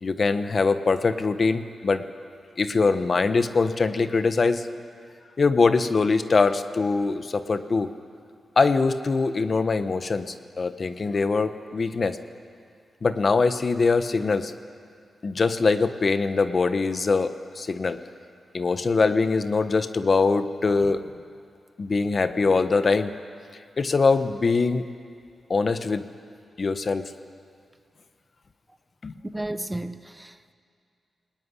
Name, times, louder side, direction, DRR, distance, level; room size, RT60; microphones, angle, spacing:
voice 1, 0.0-2.0 2.6-4.7 5.4-7.9 8.6-12.2 13.0-14.5 15.2-18.0 18.5-21.0 21.8-23.1 23.8-24.9 25.5-26.0 26.6-27.1 29.0-29.1, left 4 dB, 45° left, 1.2 m, -23 dB
voice 2, 29.3-30.5, right 1 dB, 10° right, 1.0 m, -33 dB
29.0 x 19.5 x 9.8 m
wide cardioid pair, 100°, 0 cm